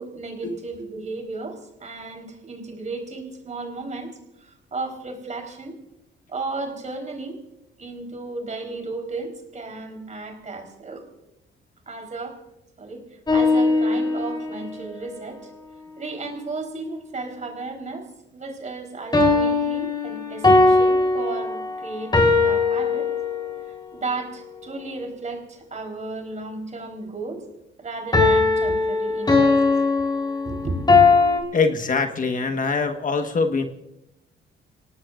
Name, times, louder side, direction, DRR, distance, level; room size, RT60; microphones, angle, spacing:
voice 1, 0.0-4.1 4.4-5.8 6.3-7.4 7.8-11.0 11.9-12.4 12.8-13.0 13.3-15.5 16.0-23.1 23.9-27.4 27.8-29.6 30.4-30.8, right 3 dB, 35° right, 3 dB, 4.1 m, -34 dB
sound 1, 13.3-14.6 19.1-23.7 28.1-31.4, left 3 dB, 20° left, 3.8 m, -19 dB
voice 2, 31.5-33.6, left 4 dB, 40° left, 6 dB, 1.5 m, -23 dB
27.5 x 18.0 x 2.5 m, 0.87 s
cardioid pair, 90°, 20 cm